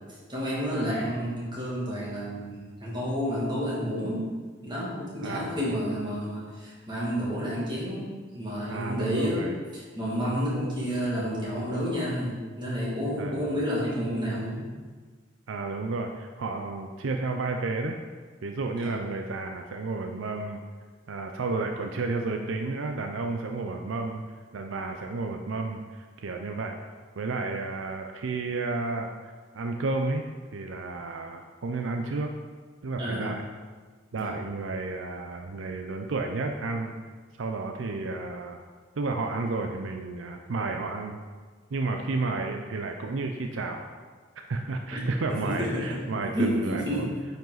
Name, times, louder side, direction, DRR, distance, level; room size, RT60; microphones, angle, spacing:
voice 1, 0.3-4.3 4.6-8.1 8.3-9.4 9.7-14.7 18.8-18.9 33.0-33.4 34.2-34.4 44.9-45.0 45.4-47.1, equal, 25° right, -7 dB, 2.3 m, -30 dB
voice 2, 5.2-5.6 8.7-9.6 13.2-13.5 15.5-18.0 18.4-20.6 21.1-24.2 24.5-26.8 27.2-29.1 29.5-32.3 32.8-33.4 34.1-36.9 37.4-38.6 39.0-41.2 41.7-43.9 44.5-47.1, right 3 dB, 75° right, 4 dB, 0.5 m, -32 dB
9.0 x 5.3 x 4.0 m, 1.5 s
head